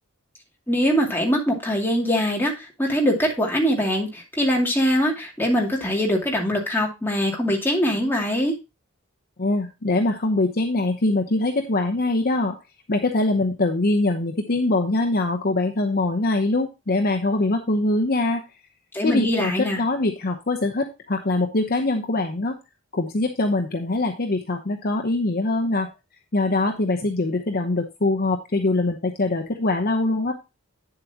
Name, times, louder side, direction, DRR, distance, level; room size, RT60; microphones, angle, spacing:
voice 1, 0.7-2.5 2.8-8.5 18.9-19.8, equal, 10° left, -1 dB, 2.5 m, -22 dB
voice 2, 9.4-12.6 12.9-18.4 19.0-22.5 22.9-25.9 26.3-30.3, left 2 dB, 45° left, 4 dB, 0.9 m, -23 dB
9.3 x 7.6 x 2.9 m, 0.25 s
head